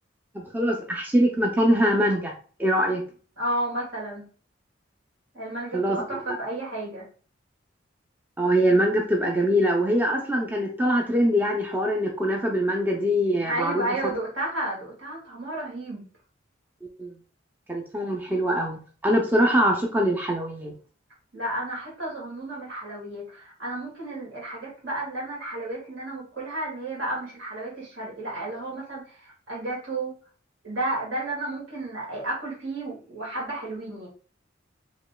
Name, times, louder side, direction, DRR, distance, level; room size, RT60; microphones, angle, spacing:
voice 1, 0.5-2.3 2.6-3.0 5.7-6.0 8.4-13.9 17.0-17.1 17.7-20.7, equal, 10° right, 0 dB, 0.4 m, -23 dB
voice 2, 3.4-4.3 5.3-7.1 13.5-16.0 21.3-30.1 30.6-34.1, right 1 dB, 70° right, -4 dB, 1.8 m, -32 dB
4.1 x 2.9 x 2.2 m, 0.40 s
head